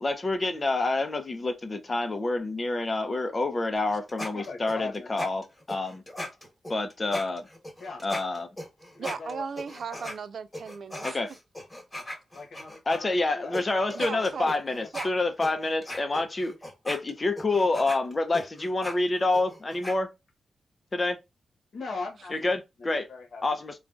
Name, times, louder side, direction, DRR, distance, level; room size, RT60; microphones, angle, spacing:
voice 1, 0.0-6.0 6.7-7.5 8.0-8.5 11.0-11.3 12.9-16.5 16.8-20.1 20.9-21.2 22.3-23.1 23.4-23.8, left 2 dB, 35° left, 0.6 m, -28 dB
sound 1, 3.7-10.2 10.5-13.0 13.5-13.6 13.9-20.0, left 1 dB, 15° left, 1.3 m, -38 dB
voice 2, 4.3-5.1 7.8-8.0 8.9-9.4 9.9-10.1 12.3-13.6 14.1-14.3 14.5-14.6 21.7-22.5 22.8-23.4, left 4 dB, 70° left, 0.9 m, -39 dB
voice 3, 9.0-11.2 13.9-14.5 14.9-15.1 22.2-22.3, right 6 dB, 70° right, 0.3 m, -36 dB
3.7 x 2.3 x 2.4 m
cardioid pair, 60°, 0 cm